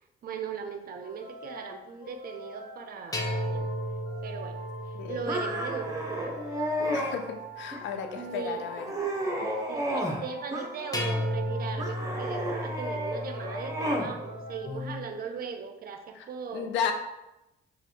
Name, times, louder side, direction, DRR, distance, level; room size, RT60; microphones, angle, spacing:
voice 1, 0.2-3.7 4.2-4.6 4.9-6.3 6.8-7.1 8.2-8.7 9.7-16.9, right 6 dB, 55° right, 6 dB, 0.4 m, -38 dB
sound 1, 1.0-15.6, equal, 45° left, 1.4 m, -45 dB
sound 2, 3.1-7.4 10.9-14.8, equal, 20° left, 0.6 m, -35 dB
sound 3, 5.3-7.2 7.7-8.2 8.6-10.2 10.5-11.2 11.8-14.1, equal, 15° right, 0.7 m, -32 dB
voice 2, 6.9-8.8 16.2-16.3 16.5-16.9, left 7 dB, 80° left, 6 dB, 0.4 m, -33 dB
3.3 x 2.4 x 2.8 m, 0.93 s
supercardioid pair, 65°, 19 cm